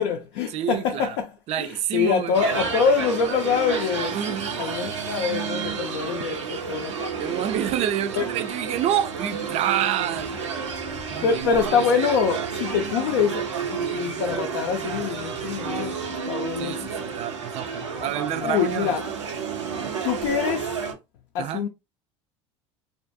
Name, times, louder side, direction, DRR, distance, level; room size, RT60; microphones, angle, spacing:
voice 1, 0.0-1.3 1.6-4.2 4.6-7.2 8.2-8.3 11.2-16.9 18.4-19.1 20.0-20.7 21.3-21.7, left 6 dB, 70° left, 0.4 m, -25 dB
voice 2, 0.5-1.2 1.5-2.4 4.1-4.7 5.5-5.6 7.2-10.3 11.1-11.8 16.6-18.9 21.4-21.6, right 11 dB, 45° right, 0.4 m, -28 dB
sound 1, 2.3-20.9, right 6 dB, 90° right, 0.7 m, -30 dB
2.4 x 2.2 x 2.6 m
hypercardioid pair, 75°, 15 cm